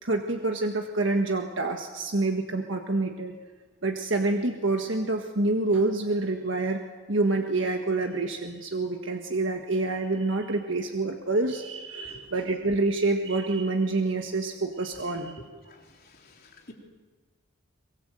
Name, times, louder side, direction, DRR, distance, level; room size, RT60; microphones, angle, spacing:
voice 1, 0.0-3.3 3.8-6.8 7.1-15.4, right 2 dB, 65° right, 4 dB, 1.6 m, -27 dB
voice 2, 16.2-16.7, left 1 dB, 45° left, 0 dB, 4.1 m, -49 dB
24.0 x 22.0 x 7.9 m, 1.3 s
head